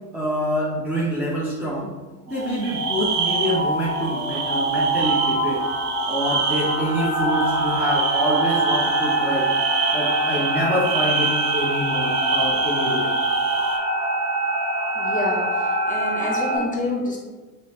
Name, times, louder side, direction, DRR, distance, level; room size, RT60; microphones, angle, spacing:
voice 1, 0.1-1.9 2.3-5.6 6.1-9.5 9.9-13.1, equal, 5° right, -7 dB, 0.5 m, -26 dB
sound 1, 2.3-16.6, right 1 dB, 35° right, 1.2 m, -24 dB
sound 2, 2.4-13.8, right 6 dB, 65° right, 0.6 m, -28 dB
voice 2, 14.9-17.2, left 1 dB, 15° left, -3 dB, 0.9 m, -27 dB
2.7 x 2.0 x 2.9 m, 1.3 s
hypercardioid pair, 60°, 46 cm